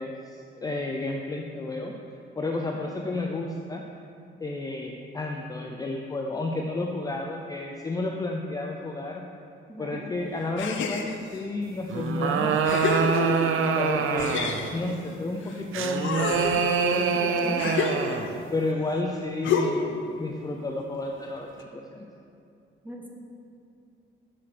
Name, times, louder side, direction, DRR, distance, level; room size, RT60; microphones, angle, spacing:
voice 1, 0.0-1.9 2.4-3.8 4.4-9.2 9.8-13.3 13.8-14.4 14.7-16.5 16.8-17.7 18.1-22.1, left 2 dB, 20° left, 1 dB, 0.5 m, -31 dB
voice 2, 9.7-10.1 17.4-17.7 22.8-23.1, equal, 10° right, -1 dB, 1.0 m, -40 dB
sound 1, 10.6-11.4 12.1-12.2 12.6-13.7 14.2-15.6 15.9-18.5 19.4-20.0, left 5 dB, 70° left, 0.7 m, -29 dB
sound 2, 11.9-14.7 15.7-18.3, right 6 dB, 80° right, 0.6 m, -25 dB
7.5 x 6.7 x 5.9 m, 2.6 s
wide cardioid pair, 165°, 21 cm